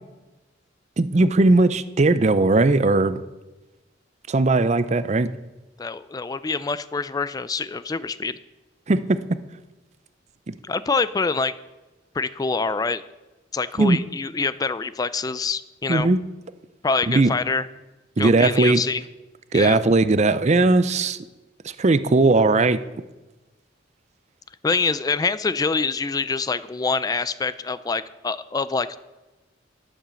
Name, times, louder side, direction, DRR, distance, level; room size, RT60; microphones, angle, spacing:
voice 1, 1.0-3.2 4.3-5.3 8.9-9.2 10.5-10.6 13.8-14.0 15.9-16.2 17.1-17.3 18.2-18.8 19.5-21.2 21.8-22.8, right 2 dB, 35° right, 14 dB, 0.5 m, -18 dB
voice 2, 5.8-8.4 10.6-11.5 12.1-13.0 13.5-16.1 16.8-17.7 18.2-19.0 19.5-19.8 24.6-29.0, left 4 dB, 20° left, 15 dB, 0.3 m, -25 dB
12.0 x 7.4 x 6.9 m, 1.1 s
head